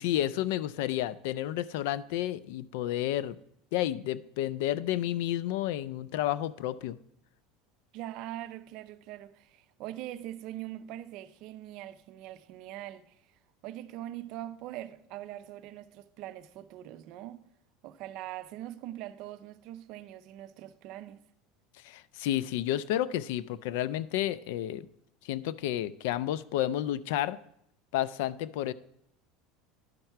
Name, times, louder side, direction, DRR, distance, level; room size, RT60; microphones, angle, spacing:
voice 1, 0.0-3.4 3.7-7.0 21.8-24.9 25.2-27.4 27.9-28.7, left 13 dB, 75° left, 0.3 m, -31 dB
voice 2, 7.9-13.0 13.6-17.4 17.8-21.2, right 13 dB, 55° right, 0.5 m, -42 dB
11.0 x 5.7 x 4.4 m
supercardioid pair, 135°, 0 cm